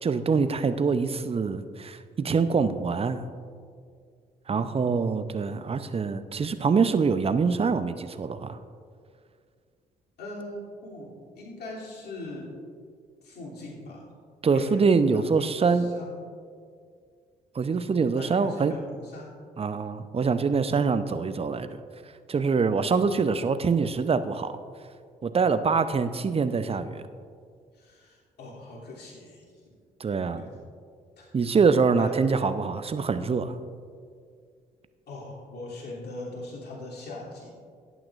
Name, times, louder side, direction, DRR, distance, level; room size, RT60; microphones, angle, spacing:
voice 1, 0.0-3.2 4.5-8.6 14.4-15.9 17.5-18.7 19.6-21.8 22.3-24.5 25.2-27.0 30.0-30.5 31.3-33.5, right 5 dB, 30° right, 11 dB, 0.7 m, -24 dB
voice 2, 10.2-12.5 13.2-14.1 14.5-16.2 17.8-19.4 23.6-23.9 27.7-29.6 30.4-30.6 31.2-31.3 32.0-32.2 33.1-33.3 35.1-37.5, left 2 dB, 55° left, -4 dB, 3.0 m, -41 dB
17.5 x 9.1 x 2.5 m, 2.1 s
figure-of-eight pair, 40°, 20 cm